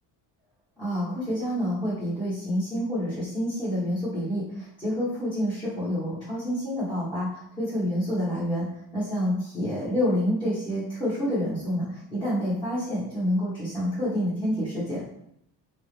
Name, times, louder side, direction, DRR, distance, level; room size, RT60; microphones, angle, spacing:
voice 1, 0.8-8.7 8.9-15.0, equal, 10° left, -12 dB, 1.3 m, -28 dB
4.4 x 2.1 x 3.3 m, 0.72 s
cardioid pair, 160°, 43 cm